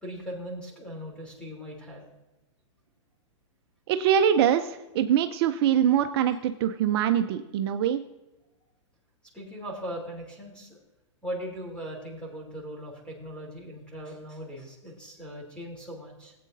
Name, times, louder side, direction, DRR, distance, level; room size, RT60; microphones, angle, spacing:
voice 1, 0.0-2.0 9.3-10.8 11.2-16.3, equal, 5° left, -2 dB, 3.2 m, -39 dB
voice 2, 3.9-8.0, right 9 dB, 50° right, 8 dB, 0.5 m, -23 dB
18.0 x 8.4 x 2.6 m, 1.0 s
hypercardioid pair, 135°, 16 cm